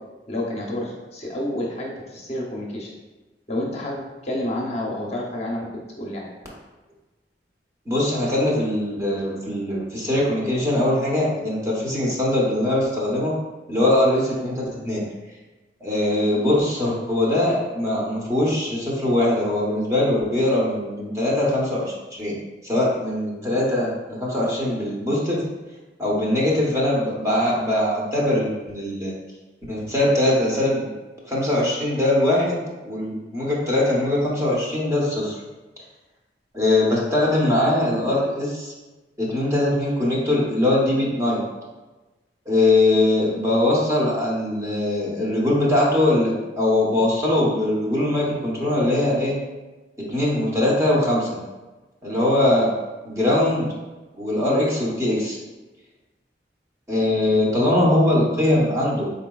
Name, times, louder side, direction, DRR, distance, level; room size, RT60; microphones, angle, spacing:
voice 1, 0.3-2.9 3.5-5.7 6.0-6.3, left 1 dB, 40° left, -3 dB, 0.7 m, -29 dB
voice 2, 7.9-13.3 13.7-15.0 15.8-22.3 22.6-25.5 26.0-29.1 29.7-30.9 31.3-35.4 36.5-38.7 39.2-41.4 42.5-49.4 50.1-51.4 52.0-52.7 53.1-53.7 54.2-55.4 56.9-59.1, left 1 dB, 15° right, -4 dB, 0.8 m, -21 dB
4.3 x 3.9 x 2.3 m, 1.2 s
head